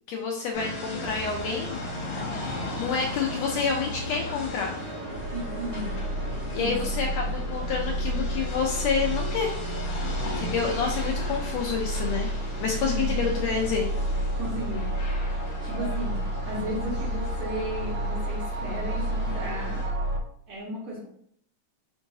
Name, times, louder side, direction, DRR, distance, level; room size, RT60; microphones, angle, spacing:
voice 1, 0.1-1.8 2.8-4.8 6.5-9.5 10.2-12.3 12.6-13.9, left 5 dB, 80° left, 0 dB, 1.6 m, -28 dB
sound 1, 0.5-19.9, left 2 dB, 60° left, 1.4 m, -38 dB
sound 2, 1.0-20.2, right 1 dB, 85° right, 1.3 m, -31 dB
voice 2, 5.3-6.0 6.6-7.0 10.3-10.5 13.0-13.2 14.3-14.9 15.6-16.2 16.4-19.8 20.5-21.1, equal, 70° right, -5 dB, 1.4 m, -34 dB
4.6 x 3.7 x 2.7 m, 0.66 s
omnidirectional pair, 3.4 m